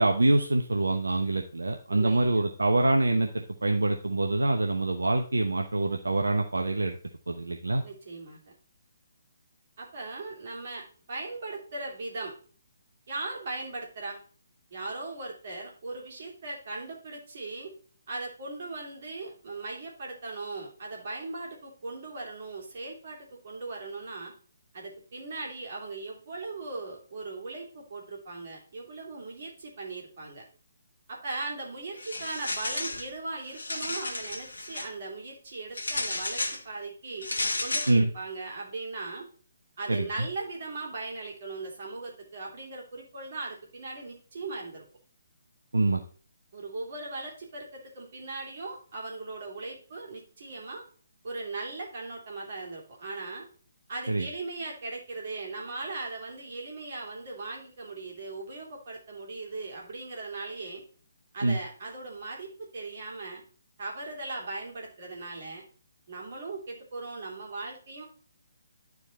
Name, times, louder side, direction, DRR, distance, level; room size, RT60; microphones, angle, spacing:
voice 1, 0.0-7.0 7.3-7.8 37.9-38.1 39.9-40.3 45.7-46.0 54.1-54.3 61.4-61.6, right 2 dB, 70° right, 3 dB, 0.9 m, -25 dB
voice 2, 1.9-2.5 7.8-8.5 9.8-12.3 13.1-14.2 14.7-17.7 18.1-24.3 24.7-30.4 31.1-37.3 37.6-39.3 39.8-44.8 46.5-50.8 51.2-53.5 53.9-60.8 61.3-63.4 63.8-65.6 66.1-68.0, right 3 dB, 45° right, -1 dB, 2.9 m, -38 dB
sound 1, 32.0-33.1 33.5-34.9 35.7-36.6 37.2-38.0, left 2 dB, 65° left, 1.2 m, -32 dB
11.0 x 4.8 x 4.2 m, 0.42 s
figure-of-eight pair, 140°, 0 cm